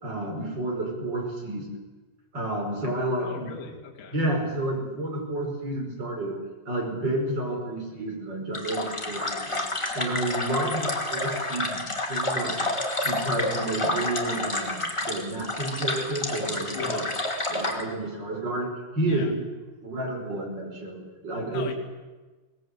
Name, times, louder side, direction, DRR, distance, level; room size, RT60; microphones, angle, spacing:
voice 1, 0.0-1.7 2.3-3.5 4.1-6.3 6.7-9.6 9.9-12.7 13.0-17.1 17.5-19.4 19.8-21.7, right 1 dB, 20° right, 1 dB, 5.1 m, -30 dB
voice 2, 3.2-4.2 16.7-17.1 19.1-19.3 21.5-21.7, left 6 dB, 65° left, 1 dB, 5.0 m, -38 dB
sound 1, 8.5-17.8, left 2 dB, 30° left, 0.5 m, -29 dB
24.5 x 19.5 x 8.2 m, 1.2 s
omnidirectional pair, 5.9 m